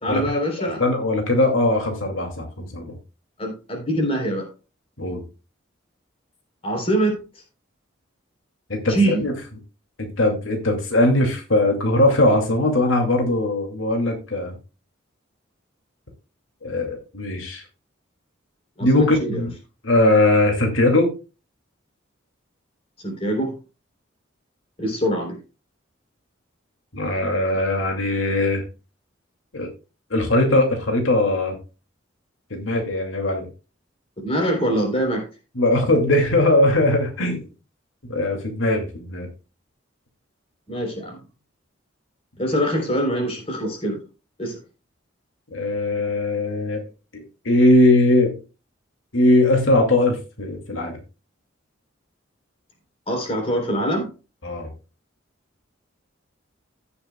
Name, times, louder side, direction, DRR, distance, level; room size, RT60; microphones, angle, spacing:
voice 1, 0.0-0.8 3.4-4.5 6.6-7.1 8.9-9.3 18.8-19.5 23.0-23.5 24.8-25.4 34.2-35.3 40.7-41.2 42.4-44.0 44.4-44.6 53.1-54.1, right 1 dB, 30° left, 2 dB, 3.5 m, -24 dB
voice 2, 0.6-2.9 5.0-5.2 8.7-9.3 10.0-14.6 16.6-17.6 18.8-19.5 19.8-21.1 26.9-28.6 29.5-29.7 30.1-31.6 32.5-33.5 35.6-37.4 38.1-39.3 45.5-46.8 47.1-48.4 49.1-51.0 54.4-54.7, left 1 dB, 90° left, 3 dB, 2.3 m, -20 dB
16.0 x 6.9 x 2.2 m, 0.31 s
head